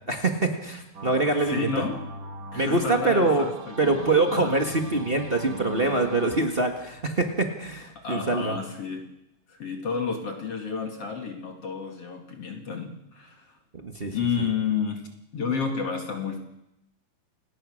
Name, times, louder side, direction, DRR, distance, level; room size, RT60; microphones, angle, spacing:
voice 1, 0.1-1.7 2.5-3.4 3.8-8.6 13.7-14.5, right 2 dB, 35° right, 3 dB, 0.8 m, -24 dB
sound 1, 0.9-6.5, right 2 dB, 65° right, 0.8 m, -41 dB
voice 2, 1.5-2.0 2.5-4.5 7.9-9.1 9.5-13.6 14.0-15.0 15.3-16.4, left 6 dB, 45° left, 4 dB, 3.1 m, -31 dB
29.0 x 18.5 x 6.5 m, 0.86 s
omnidirectional pair, 4.1 m